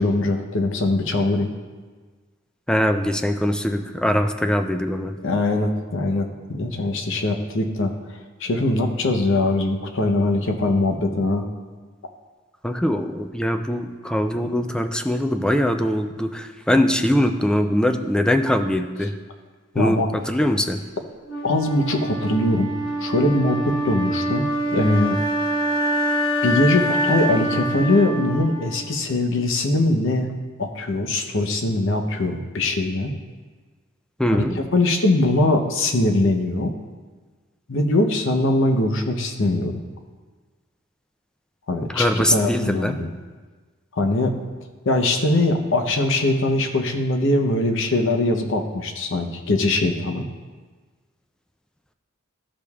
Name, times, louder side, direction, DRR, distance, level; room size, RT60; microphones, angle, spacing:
voice 1, 0.0-1.5 5.2-7.9 8.4-11.4 19.7-20.1 21.4-22.7 23.0-25.2 26.4-30.3 30.6-33.1 34.6-36.7 37.7-39.8 41.7-43.1 43.9-44.3 44.9-50.2, left 2 dB, 65° left, 5 dB, 0.8 m, -21 dB
voice 2, 2.7-5.2 12.6-19.1 19.8-20.8 34.2-34.6 41.8-43.0, left 1 dB, 5° left, 6 dB, 0.3 m, -22 dB
Wind instrument woodwind instrument, 21.3-29.3, right 1 dB, 85° left, 1.0 m, -25 dB
13.5 x 5.0 x 2.4 m, 1.4 s
head